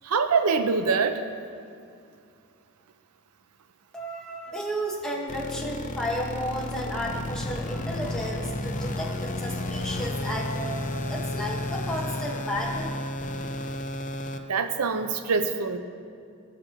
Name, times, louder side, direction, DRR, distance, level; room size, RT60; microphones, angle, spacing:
voice 1, 0.0-1.2 14.5-15.8, right 5 dB, 85° right, 9 dB, 0.6 m, -24 dB
voice 2, 3.9-12.9, equal, 5° left, -3 dB, 1.4 m, -33 dB
sound 1, 5.3-14.4, left 1 dB, 35° left, 0.6 m, -32 dB
19.0 x 6.4 x 3.0 m, 2.4 s
head